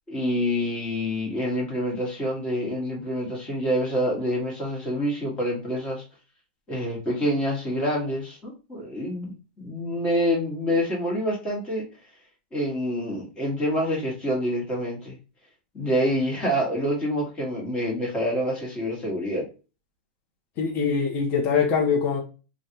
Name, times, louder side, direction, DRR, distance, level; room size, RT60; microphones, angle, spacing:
voice 1, 0.1-6.0 6.7-9.3 9.6-11.8 12.5-15.2 15.7-19.4, equal, 15° left, 1.4 m, -27 dB
voice 2, 20.6-22.2, left 6 dB, 35° left, 0.9 m, -23 dB
3.4 x 2.4 x 2.8 m
supercardioid pair, 145°, 6 cm